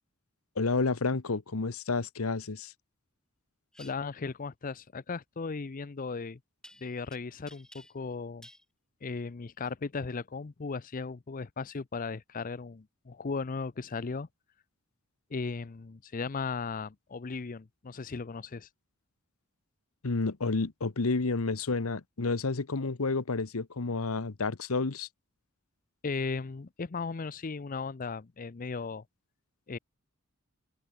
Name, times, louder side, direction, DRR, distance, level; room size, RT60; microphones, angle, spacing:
voice 1, 0.6-2.7 20.0-25.1, left 3 dB, 80° left, 1.0 m, -30 dB
sound 1, 3.7-3.9 6.6-7.2 7.5-8.1 8.4-8.7, left 1 dB, 5° left, 2.6 m, -53 dB
voice 2, 3.8-6.4 6.8-8.5 9.0-14.3 15.3-18.7 26.0-29.0 29.7-29.8, left 4 dB, 40° left, 0.5 m, -36 dB
open air
head